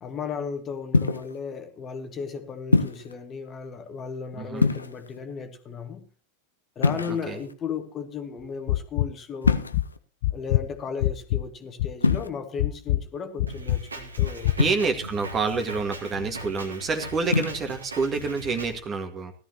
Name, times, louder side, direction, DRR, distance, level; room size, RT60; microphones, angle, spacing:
voice 1, 0.0-6.0 6.8-9.6 10.3-14.5, left 6 dB, 25° left, 1.7 m, -35 dB
sound 1, 0.9-1.4 2.7-3.1 4.6-5.2 6.8-7.5 9.4-10.0 12.0-12.3 14.6-15.1 17.2-17.7, left 4 dB, 80° left, 0.8 m, -24 dB
voice 2, 4.4-4.7 7.1-7.4 14.6-19.3, right 4 dB, 25° right, 1.9 m, -28 dB
sound 2, 8.7-9.1 9.4-9.8 10.2-11.5 11.8-12.2 12.6-13.0 13.4-13.8 14.2-14.6, left 16 dB, 50° left, 0.5 m, -24 dB
Drum kit, 13.5-18.8, right 1 dB, 80° right, 2.3 m, -39 dB
17.5 x 13.0 x 3.0 m
figure-of-eight pair, 90°, 0 cm